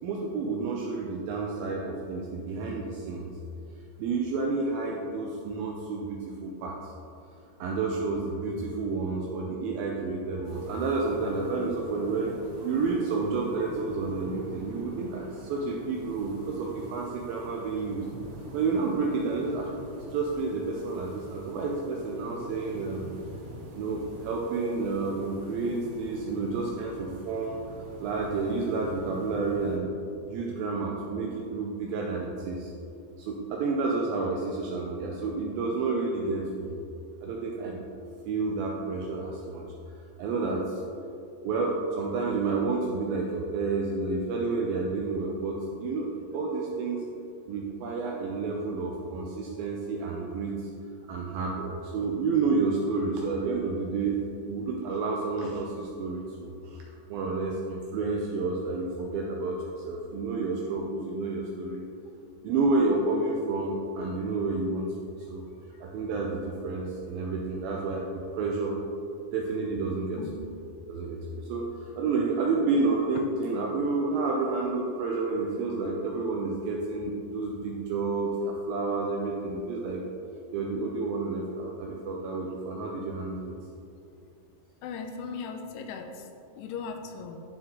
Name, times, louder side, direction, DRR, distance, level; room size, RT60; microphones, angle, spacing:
voice 1, 0.0-3.3 4.0-6.9 7.6-12.3 12.6-18.1 18.5-19.7 20.1-23.1 23.7-27.6 28.0-29.9 30.3-32.7 33.2-36.8 37.2-37.8 38.3-39.6 40.2-40.8 41.4-47.0 47.5-50.7 51.1-54.2 54.5-56.8 57.1-61.8 62.4-65.4 65.8-68.8 69.3-70.5 70.9-80.0 80.5-83.6, right 3 dB, 80° right, -1 dB, 2.2 m, -30 dB
sound 1, 10.4-29.8, right 1 dB, 65° right, 3.3 m, -45 dB
voice 2, 84.8-86.3 86.5-87.4, left 5 dB, 90° left, 4 dB, 2.7 m, -38 dB
11.0 x 4.4 x 3.7 m, 2.6 s
omnidirectional pair, 4.7 m